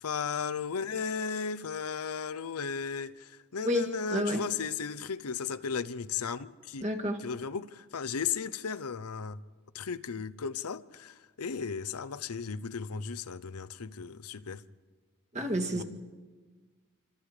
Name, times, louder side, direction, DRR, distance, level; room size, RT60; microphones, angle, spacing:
voice 1, 0.0-9.4 9.7-14.6 15.7-15.8, left 6 dB, 80° left, 0.7 m, -35 dB
voice 2, 3.6-4.4 6.8-7.2 15.3-15.8, equal, 30° right, 1.9 m, -30 dB
26.5 x 26.5 x 5.0 m
head